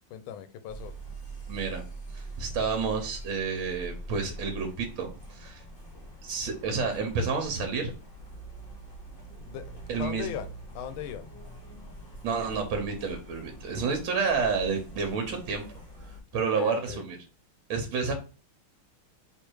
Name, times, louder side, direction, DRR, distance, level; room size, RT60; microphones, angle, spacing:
voice 1, 0.1-0.9 9.5-9.7 10.0-10.5 10.7-11.3 16.3-17.0, left 10 dB, 80° left, 11 dB, 1.4 m, -38 dB
sound 1, 0.7-16.2, right 2 dB, 35° left, 1.0 m, -44 dB
voice 2, 1.5-1.8 2.1-5.6 6.2-7.9 9.9-10.3 12.2-15.6 16.3-17.2 17.7-18.1, right 5 dB, 75° right, 4 dB, 1.5 m, -30 dB
3.3 x 3.3 x 4.5 m, 0.35 s
omnidirectional pair, 2.3 m